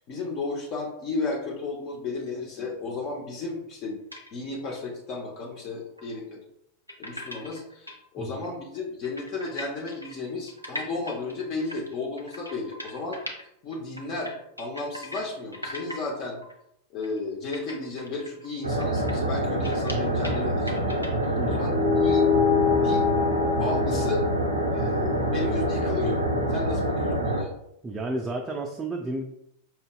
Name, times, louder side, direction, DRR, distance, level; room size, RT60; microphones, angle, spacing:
voice 1, 0.1-4.0 4.3-6.4 7.0-13.2 13.6-16.4 16.9-22.4 22.7-23.1 23.6-24.2 24.7-26.2 26.5-27.5, left 3 dB, 40° left, -1 dB, 0.6 m, -33 dB
sound 1, 4.1-4.3 4.7-4.8 6.0-6.1 6.9-8.0 8.4-8.5 8.7-8.8 9.0-13.4 13.7-15.3 15.5-16.1 16.4-16.5 17.0-17.2 17.5-20.4 20.7-21.3, left 1 dB, 90° left, 0.5 m, -40 dB
sound 2, 18.6-27.4, right 1 dB, 80° right, 0.4 m, -26 dB
sound 3, 21.7-26.5, left 6 dB, 10° left, 1.0 m, -26 dB
voice 2, 27.8-29.2, right 2 dB, 15° right, 1 dB, 0.4 m, -32 dB
5.5 x 2.6 x 2.2 m, 0.76 s
figure-of-eight pair, 90°, 0 cm